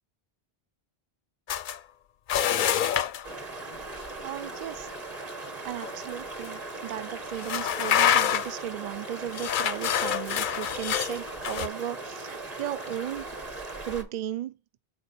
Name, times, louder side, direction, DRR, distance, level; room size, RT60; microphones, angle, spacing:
sound 1, 1.5-1.8 2.3-3.2 5.8-5.9 6.4-6.5 7.4-8.6 9.3-11.7, left 9 dB, 60° left, 0.6 m, -26 dB
sound 2, 3.2-14.0, right 2 dB, 35° right, 1.4 m, -39 dB
voice 1, 4.2-4.9 5.6-14.6, right 11 dB, 55° right, 0.5 m, -36 dB
7.1 x 4.3 x 4.2 m
omnidirectional pair, 1.1 m